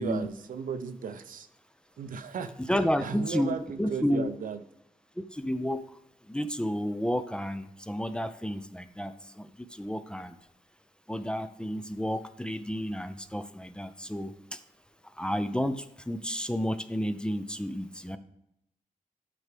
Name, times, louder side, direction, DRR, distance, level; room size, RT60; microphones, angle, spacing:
voice 1, 0.0-1.5 2.0-2.5 3.0-4.6, right 6 dB, 85° right, 9 dB, 0.7 m, -35 dB
voice 2, 2.6-4.3 5.2-5.9 6.3-9.1 9.4-10.3 11.1-14.3 15.2-18.2, equal, 5° left, 10 dB, 0.4 m, -31 dB
11.5 x 4.9 x 3.3 m, 0.82 s
wide cardioid pair, 145°, 14 cm